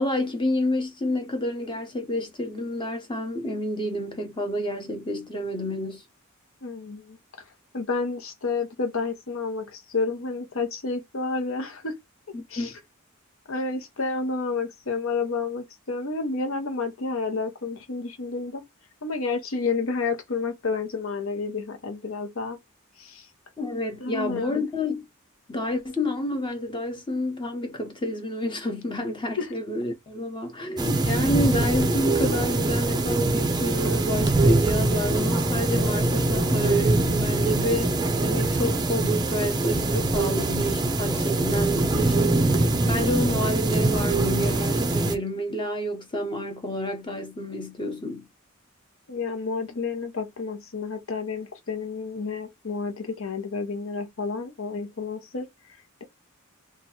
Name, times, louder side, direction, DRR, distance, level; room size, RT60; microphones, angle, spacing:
voice 1, 0.0-6.0 12.3-12.8 23.6-25.0 25.5-37.9 38.2-48.3, equal, 20° left, 0.9 m, -29 dB
voice 2, 6.6-7.2 7.7-11.9 12.5-12.7 13.5-18.6 19.0-22.6 23.0-23.3 24.0-24.7 29.4-29.5 49.1-55.5, left 4 dB, 65° left, 0.9 m, -30 dB
sound 1, 30.8-45.2, right 2 dB, 20° right, 0.5 m, -23 dB
3.0 x 2.4 x 4.3 m
head